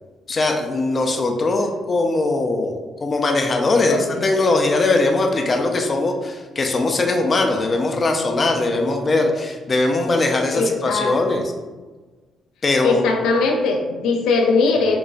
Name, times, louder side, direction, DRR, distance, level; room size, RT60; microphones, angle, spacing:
voice 1, 0.3-11.4 12.6-13.0, left 2 dB, 35° left, 3 dB, 0.4 m, -20 dB
voice 2, 3.9-4.3 10.5-11.4 12.8-15.0, left 4 dB, 90° left, 1 dB, 0.5 m, -20 dB
4.9 x 2.3 x 2.5 m, 1.3 s
cardioid pair, 90°, 0 cm